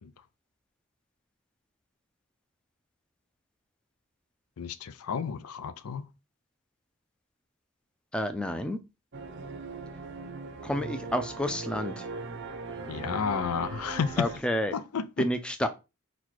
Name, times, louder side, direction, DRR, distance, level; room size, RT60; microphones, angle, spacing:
voice 1, 4.6-6.0 12.9-14.3 14.7-15.3, left 6 dB, 85° left, 0.5 m, -31 dB
voice 2, 8.1-8.8 10.6-12.1 14.2-14.7 15.2-15.7, equal, 5° left, 0.4 m, -29 dB
sound 1, 9.1-14.4, right 4 dB, 55° right, 0.6 m, -39 dB
4.0 x 2.2 x 4.5 m
head